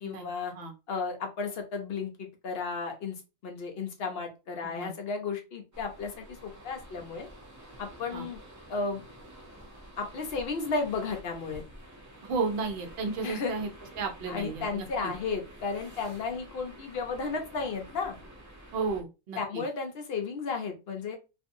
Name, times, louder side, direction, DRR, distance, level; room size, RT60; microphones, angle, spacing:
voice 1, 0.0-0.5 0.9-3.2 3.4-7.3 7.8-8.4 8.7-9.0 10.0-11.6 13.2-13.5 14.3-18.2 19.4-21.2, left 4 dB, 55° left, 3 dB, 0.7 m, -33 dB
sound 1, 5.7-19.0, right 1 dB, 25° right, 0.4 m, -49 dB
voice 2, 12.2-13.7 14.0-15.1 18.7-19.6, right 4 dB, 55° right, 3 dB, 0.8 m, -33 dB
2.6 x 2.5 x 2.6 m, 0.28 s
omnidirectional pair, 1.4 m